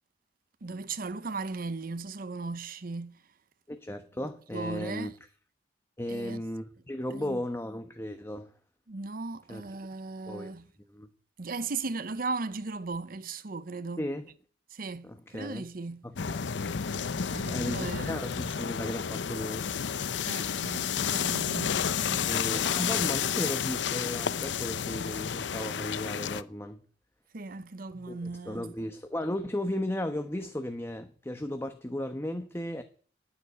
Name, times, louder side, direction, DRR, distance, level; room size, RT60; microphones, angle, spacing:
voice 1, 0.6-3.2 4.5-5.1 6.1-6.4 7.1-7.4 8.9-10.7 11.4-14.1 14.7-16.0 17.3-18.2 20.2-22.4 27.3-28.7, right 3 dB, 55° right, 0.8 m, -37 dB
voice 2, 3.7-5.1 6.0-8.5 9.5-9.6 10.3-10.5 10.9-11.1 14.0-14.3 15.0-15.6 16.0-16.5 17.5-19.7 22.3-26.8 27.9-32.8, left 1 dB, 15° left, 1.1 m, -35 dB
sound 1, 16.2-26.4, left 7 dB, 90° left, 0.6 m, -31 dB
11.0 x 9.7 x 9.6 m
head